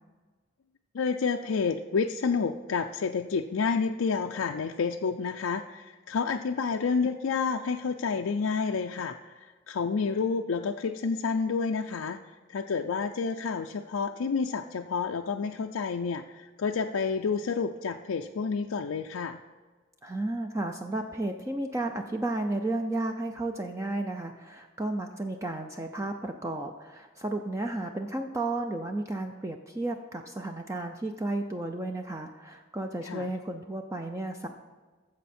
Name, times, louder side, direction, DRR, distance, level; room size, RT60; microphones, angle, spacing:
voice 1, 0.9-12.2 12.5-19.4 33.0-33.3, left 5 dB, 85° left, 4 dB, 0.4 m, -29 dB
voice 2, 20.0-34.5, right 2 dB, 15° right, 4 dB, 0.4 m, -33 dB
13.5 x 7.3 x 4.3 m, 1.4 s
head